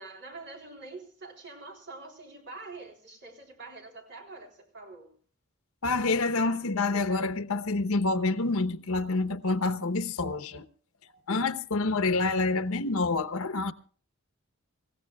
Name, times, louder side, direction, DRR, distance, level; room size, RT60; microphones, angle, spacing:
voice 1, 0.0-5.1, right 3 dB, 55° right, 3.7 m, -45 dB
voice 2, 5.8-10.6 11.3-13.7, left 3 dB, 80° left, 0.9 m, -27 dB
26.5 x 15.5 x 2.3 m
head